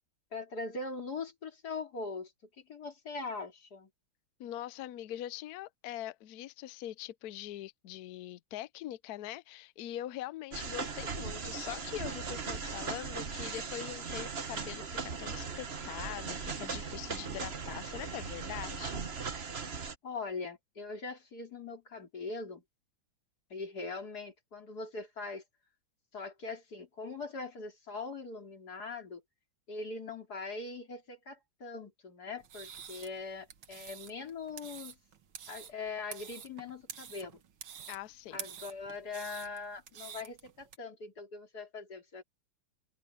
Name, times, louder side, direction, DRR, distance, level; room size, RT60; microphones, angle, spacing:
voice 1, 0.3-2.3 2.7-3.9 20.0-22.6 23.5-25.4 26.1-29.2 29.7-35.0 35.5-37.4 38.3-42.2, left 3 dB, 45° left, 3.6 m, -41 dB
voice 2, 4.4-18.9 37.9-38.5, left 13 dB, 80° left, 0.8 m, -43 dB
sound 1, 10.5-20.0, right 5 dB, 35° right, 1.2 m, -38 dB
sound 2, 32.4-40.8, right 8 dB, 70° right, 2.2 m, -48 dB
open air
omnidirectional pair, 2.4 m